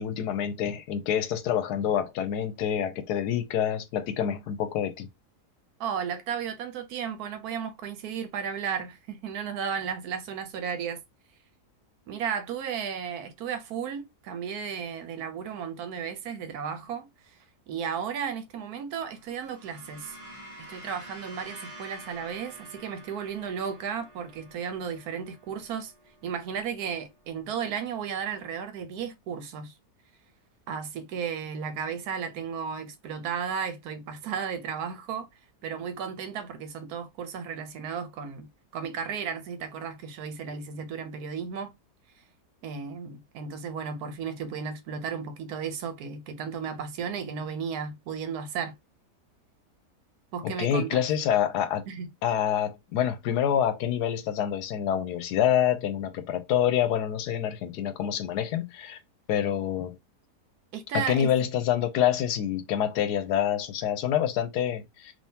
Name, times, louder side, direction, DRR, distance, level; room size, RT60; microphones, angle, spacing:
voice 1, 0.0-5.1 50.4-51.8 52.2-59.0 59.3-60.0 60.9-65.1, left 9 dB, 80° left, 1.2 m, -27 dB
voice 2, 5.8-11.0 12.1-17.1 17.7-20.2 20.6-25.9 26.2-29.7 30.7-35.3 35.6-38.5 38.7-41.7 42.6-48.7 50.3-51.0 51.9-52.1 60.7-61.3, right 7 dB, 70° right, 1.2 m, -34 dB
sound 1, 19.0-27.5, right 1 dB, 25° right, 0.8 m, -49 dB
3.5 x 2.9 x 2.8 m
omnidirectional pair, 1.7 m